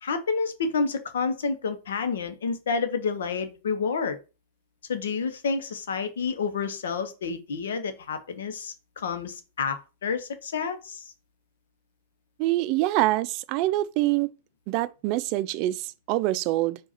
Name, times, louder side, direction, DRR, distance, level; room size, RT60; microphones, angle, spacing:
voice 1, 0.0-4.2 4.9-11.1, left 5 dB, 85° left, 0.8 m, -29 dB
voice 2, 12.4-14.3 14.7-16.8, right 16 dB, 50° right, 0.4 m, -25 dB
4.7 x 2.4 x 4.2 m
hypercardioid pair, 115°, 0 cm